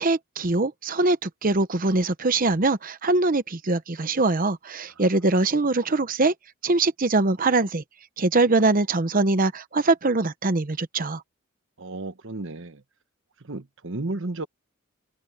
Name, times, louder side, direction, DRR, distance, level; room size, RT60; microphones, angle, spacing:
voice 1, 0.0-6.3 6.6-7.8 8.2-11.2, right 3 dB, 40° right, 0.9 m, -22 dB
voice 2, 11.8-12.8 13.4-14.5, right 2 dB, 60° right, 1.2 m, -33 dB
open air
head